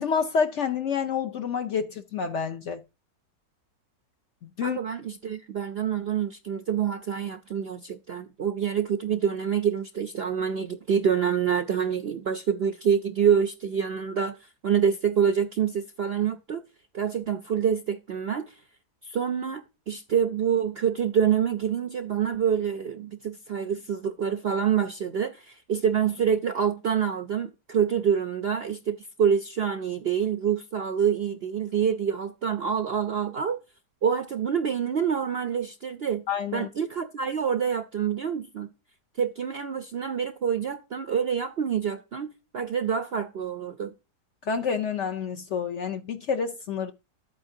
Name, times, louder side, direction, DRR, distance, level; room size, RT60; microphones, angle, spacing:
voice 1, 0.0-2.8 4.4-4.8 36.3-36.7 44.5-46.9, left 6 dB, 65° left, 0.8 m, -28 dB
voice 2, 4.6-16.6 16.9-18.5 19.0-33.6 34.0-36.2 36.5-38.7 39.2-43.9, right 7 dB, 65° right, 0.6 m, -26 dB
12.5 x 8.7 x 2.7 m
omnidirectional pair, 1.7 m